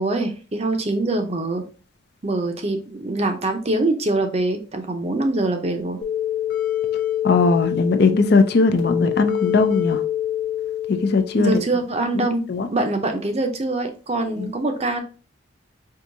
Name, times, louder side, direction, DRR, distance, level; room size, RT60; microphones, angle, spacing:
voice 1, 0.0-1.6 2.2-6.0 11.3-12.4 12.7-15.0, right 2 dB, 35° right, 5 dB, 0.6 m, -23 dB
sound 1, 6.0-11.6, left 11 dB, 85° left, 1.1 m, -26 dB
voice 2, 7.2-10.0 10.9-11.6 12.2-12.7 14.4-14.5, left 3 dB, 55° left, 8 dB, 0.4 m, -19 dB
4.6 x 2.7 x 2.6 m, 0.36 s
head